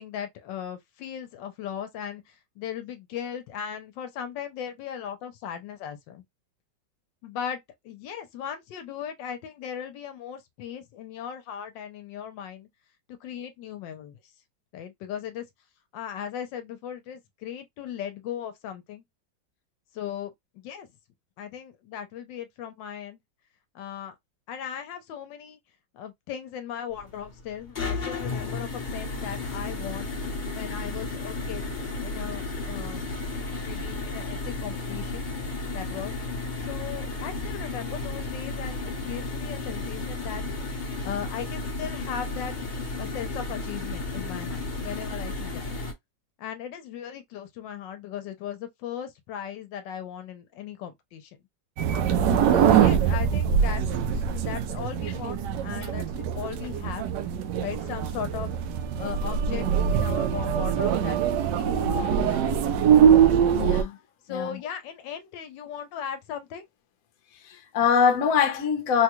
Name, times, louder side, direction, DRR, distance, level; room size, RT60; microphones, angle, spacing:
voice 1, 0.0-6.2 7.2-7.6 7.8-12.7 13.1-14.3 14.7-15.4 15.9-19.0 19.9-20.9 21.4-23.2 23.7-24.2 24.5-25.6 25.9-30.1 30.5-31.7 32.0-33.3 33.6-35.2 35.7-36.1 36.6-40.4 41.0-42.5 43.0-45.7 46.4-51.4 52.5-53.8 54.1-57.1 57.6-58.5 59.0-61.2 61.5-62.8 64.2-66.6, left 9 dB, 80° left, 1.3 m, -37 dB
sound 1, 26.9-45.9, left 3 dB, 35° left, 0.8 m, -33 dB
sound 2, 51.8-63.8, right 8 dB, 75° right, 1.1 m, -23 dB
voice 2, 63.5-64.0 64.3-64.6 67.4-69.0, left 7 dB, 60° left, 1.0 m, -23 dB
3.7 x 2.2 x 2.9 m
omnidirectional pair, 2.0 m